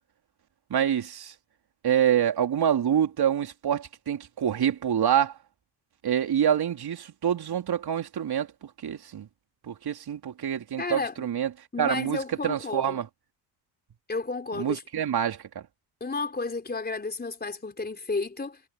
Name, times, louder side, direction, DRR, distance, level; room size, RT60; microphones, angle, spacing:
voice 1, 0.7-1.3 1.8-5.4 6.0-9.3 9.6-11.5 11.8-13.1 14.5-15.6, right 9 dB, 50° right, 4.3 m, -26 dB
voice 2, 10.8-11.3 11.7-13.0 14.1-15.0 16.0-18.6, left 3 dB, 20° left, 4.0 m, -32 dB
hypercardioid pair, 55°, 50 cm